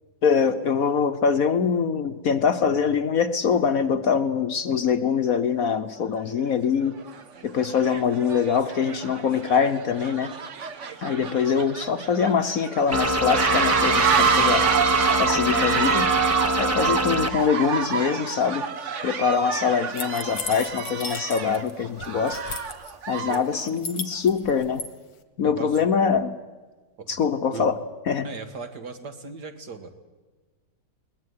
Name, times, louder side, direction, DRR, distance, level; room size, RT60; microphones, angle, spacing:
voice 1, 0.2-7.0 7.4-10.3 11.0-14.7 15.2-16.1 16.6-18.7 19.0-22.4 23.1-24.8 25.4-26.4 27.1-27.8 28.1-28.3, left 6 dB, 55° left, 10 dB, 1.2 m, -23 dB
sound 1, 6.2-6.3 7.0-7.2 7.6-23.5, right 7 dB, 45° right, 1.4 m, -27 dB
sound 2, 12.9-17.3, right 1 dB, 15° right, 0.6 m, -24 dB
sound 3, 20.0-21.7 22.0-22.9 23.3-24.9, left 5 dB, 90° left, 2.1 m, -35 dB
voice 2, 23.2-23.8 25.4-25.8 27.0-27.2 27.5-27.7 28.2-30.0, right 4 dB, 60° right, 8 dB, 2.4 m, -38 dB
21.0 x 19.5 x 9.5 m, 1.3 s
omnidirectional pair, 2.0 m